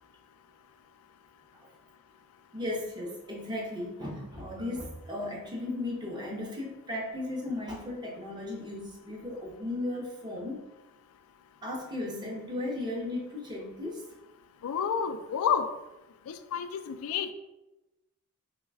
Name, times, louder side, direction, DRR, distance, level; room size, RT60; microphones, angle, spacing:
voice 1, 2.5-10.6 11.6-14.0, left 2 dB, 20° right, -1 dB, 0.6 m, -36 dB
voice 2, 14.6-15.7 16.3-17.3, left 7 dB, 85° left, 13 dB, 0.3 m, -29 dB
3.2 x 2.2 x 3.3 m, 0.99 s
head